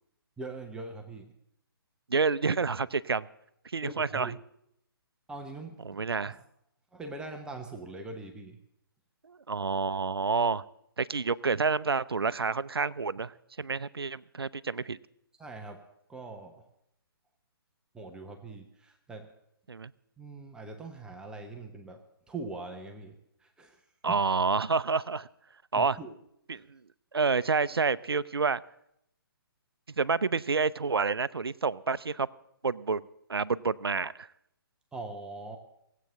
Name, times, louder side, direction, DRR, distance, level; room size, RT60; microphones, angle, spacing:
voice 1, 0.4-1.3 3.8-4.4 5.3-6.4 6.9-8.6 15.4-15.8 16.1-16.6 17.9-19.3 20.2-23.1 23.4-23.8 24.1-24.2 25.7-26.1 26.5-26.6 34.9-35.6, right 3 dB, 5° right, 3 dB, 0.9 m, -42 dB
voice 2, 2.1-3.3 3.7-4.3 5.8-6.4 9.3-10.6 11.0-13.3 13.6-15.0 19.7-19.9 24.0-25.3 25.7-26.0 26.5-26.8 27.1-28.6 30.0-32.3 32.6-33.0 33.3-34.3, right 4 dB, 85° right, 17 dB, 0.5 m, -28 dB
17.0 x 8.3 x 7.6 m, 0.77 s
figure-of-eight pair, 135°, 12 cm